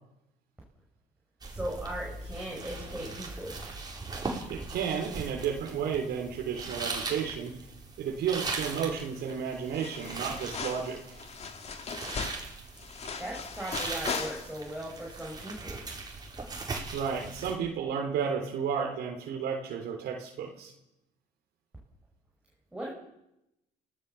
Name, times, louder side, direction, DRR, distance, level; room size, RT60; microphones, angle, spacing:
sound 1, 1.4-17.6, right 3 dB, 25° right, 5.3 m, -40 dB
voice 1, 1.5-3.6 13.2-15.8 22.7-22.9, right 1 dB, 5° right, -4 dB, 6.0 m, -38 dB
voice 2, 4.5-7.6 8.0-11.2 16.9-20.7, right 7 dB, 75° right, 1 dB, 3.6 m, -32 dB
sound 2, 8.7-9.3 9.5-14.8 15.2-15.3, left 5 dB, 40° left, 2.2 m, -39 dB
29.5 x 17.5 x 7.1 m, 0.90 s
cardioid pair, 110°, 17 cm